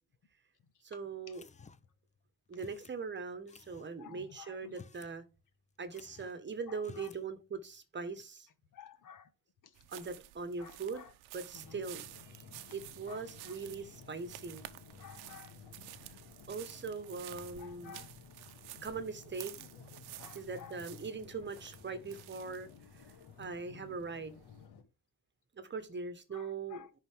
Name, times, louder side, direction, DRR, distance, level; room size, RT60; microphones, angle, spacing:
voice 1, 0.8-1.4 2.5-5.2 5.8-8.5 9.9-11.0 11.3-12.4 12.7-14.7 16.5-18.0 18.8-19.5 20.3-22.7 23.4-24.4 25.5-26.8, right 4 dB, 30° right, 1.2 m, -41 dB
sound 1, 1.3-2.0 2.6-3.0 3.5-3.9 4.6-5.2 5.4-5.5 5.9-6.4 6.8-7.3, left 5 dB, 20° left, 0.5 m, -55 dB
voice 2, 4.0-4.8 6.7-7.1 8.7-9.3 9.6-10.0 10.6-11.1 11.5-11.8 13.1-13.6 15.0-15.6 17.6-18.1 20.2-20.8 26.3-26.9, left 8 dB, 55° left, 1.3 m, -53 dB
sound 2, 9.7-24.6, right 15 dB, 85° right, 0.8 m, -52 dB
sound 3, 11.6-24.8, left 6 dB, 85° left, 1.7 m, -55 dB
10.5 x 4.1 x 3.5 m
cardioid pair, 100°, 37 cm